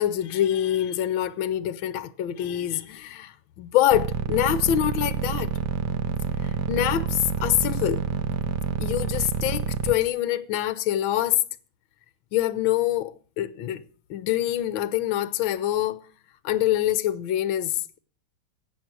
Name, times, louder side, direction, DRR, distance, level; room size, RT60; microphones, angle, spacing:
voice 1, 0.0-5.5 6.4-8.0 8.8-11.4 12.3-13.8 14.1-16.0 16.4-18.0, left 12 dB, 70° left, 1.5 m, -25 dB
sound 1, 3.9-9.9, right 7 dB, 60° right, 1.4 m, -27 dB
16.0 x 9.4 x 6.1 m
omnidirectional pair, 2.4 m